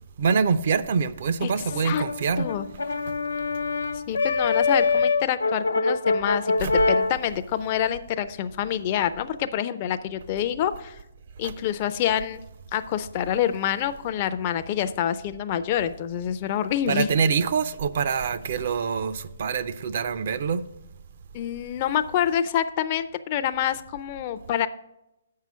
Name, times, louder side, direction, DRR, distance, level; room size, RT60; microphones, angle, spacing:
voice 1, 0.2-2.5 3.1-3.2 6.6-6.7 11.4-11.5 16.9-20.6, right 6 dB, 55° right, 0.5 m, -25 dB
voice 2, 1.4-2.0 2.4-2.7 4.1-11.0 11.4-12.4 12.7-17.1 21.3-24.7, left 10 dB, 35° left, 0.4 m, -27 dB
Brass instrument, 1.7-7.2, left 4 dB, 85° left, 0.5 m, -24 dB
7.3 x 5.6 x 6.1 m
hypercardioid pair, 150°, 0 cm